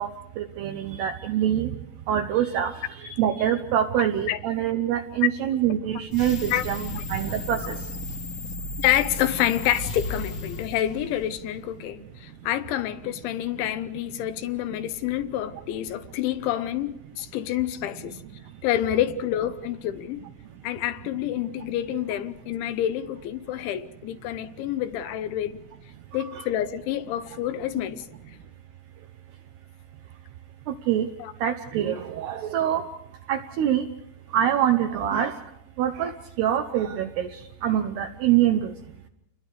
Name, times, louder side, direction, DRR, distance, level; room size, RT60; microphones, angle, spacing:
voice 1, 0.0-1.7 2.1-7.8 26.2-26.5 30.9-31.1 31.4-32.9 33.3-33.9 34.3-35.4 35.8-36.1 36.4-37.3 37.6-38.7, right 10 dB, 75° right, 2.6 m, -25 dB
sound 1, 6.1-11.5, left 2 dB, 60° left, 1.3 m, -35 dB
voice 2, 8.8-18.2 18.6-20.3 20.6-25.6 26.1-28.0 31.2-31.3, left 12 dB, 80° left, 3.2 m, -28 dB
29.0 x 22.0 x 4.9 m
omnidirectional pair, 5.5 m